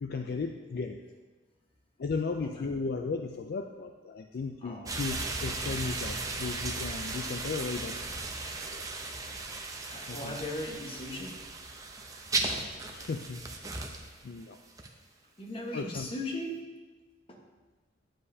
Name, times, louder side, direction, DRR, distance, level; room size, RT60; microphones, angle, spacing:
voice 1, 0.0-1.0 2.0-8.0 8.7-8.9 10.1-10.4 12.9-13.5 14.2-14.6 15.7-16.1, left 4 dB, 55° left, 5 dB, 0.4 m, -35 dB
voice 2, 4.6-4.9 9.9-11.3 15.4-16.6 17.3-17.4, left 1 dB, 30° left, -1 dB, 1.2 m, -38 dB
sound 1, 4.9-14.2 14.8-14.9, right 3 dB, 20° right, 0.6 m, -36 dB
10.0 x 7.6 x 2.7 m, 1.3 s
head